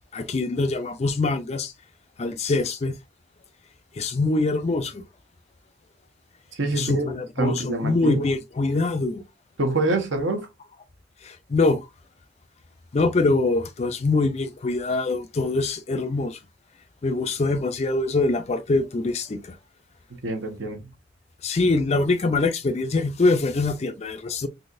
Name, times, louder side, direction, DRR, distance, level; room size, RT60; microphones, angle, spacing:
voice 1, 0.1-1.7 2.2-3.0 4.0-5.0 6.7-9.2 11.2-11.8 12.9-16.4 17.0-19.5 21.4-24.5, left 3 dB, 35° left, 0.4 m, -24 dB
voice 2, 6.6-7.1 7.4-8.3 9.6-10.5 20.2-20.9, right 2 dB, 70° right, 0.9 m, -25 dB
3.9 x 2.8 x 2.4 m
head